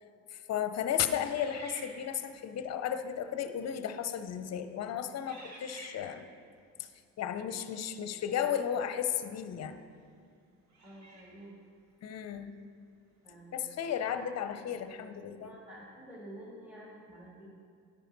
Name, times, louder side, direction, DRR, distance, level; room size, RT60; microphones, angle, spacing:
voice 1, 0.3-6.3 6.8-6.9 7.2-9.8 12.0-12.6 13.5-15.6, left 9 dB, 40° left, 10 dB, 0.7 m, -34 dB
sound 1, 1.3-2.5 3.3-3.5 4.2-4.5 5.3-6.4 9.1-9.2 10.7-11.6, right 2 dB, 45° right, 1.6 m, -51 dB
voice 2, 10.8-11.5 13.2-13.6 15.4-17.5, right 1 dB, 5° right, -6 dB, 2.2 m, -49 dB
10.0 x 8.9 x 4.0 m, 2.3 s
hypercardioid pair, 60°, 39 cm